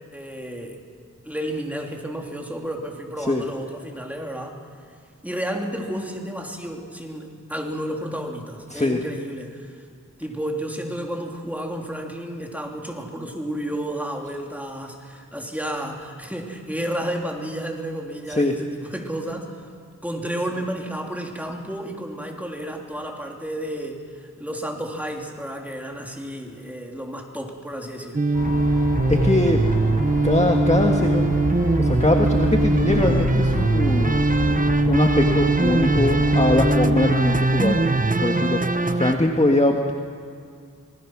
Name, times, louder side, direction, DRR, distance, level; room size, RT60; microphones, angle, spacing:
voice 1, 0.1-0.8 1.2-4.6 5.2-9.8 10.2-19.6 20.0-28.2, right 1 dB, 5° right, 1 dB, 3.2 m, -31 dB
voice 2, 8.7-9.0 18.4-18.5 29.1-29.6 30.2-31.2 31.8-34.2 34.9-37.8 38.2-38.6 38.9-39.9, left 2 dB, 20° left, 1 dB, 1.7 m, -21 dB
sound 1, 28.1-39.1, right 2 dB, 25° right, 1.0 m, -21 dB
sound 2, 28.3-38.6, left 2 dB, 60° left, 3.5 m, -28 dB
26.0 x 20.0 x 6.2 m, 2.2 s
wide cardioid pair, 50°, 32 cm